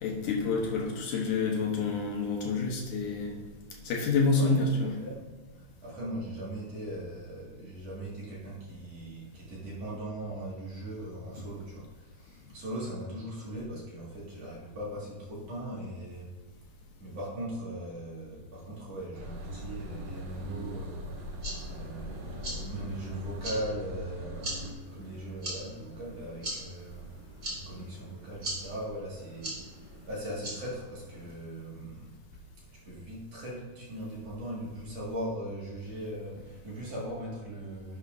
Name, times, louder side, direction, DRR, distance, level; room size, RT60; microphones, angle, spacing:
voice 1, 0.0-3.4 3.8-5.0, left 3 dB, 70° left, -1 dB, 2.2 m, -28 dB
voice 2, 4.3-5.3 5.5-16.3 17.0-27.1 27.4-32.2 32.8-38.0, right 1 dB, 50° right, -6 dB, 2.6 m, -39 dB
sound 1, 19.1-24.7, equal, 70° right, 2.5 m, -40 dB
sound 2, 21.1-31.3, right 1 dB, 25° right, 2.2 m, -42 dB
11.0 x 7.2 x 2.6 m, 1.3 s
omnidirectional pair, 4.5 m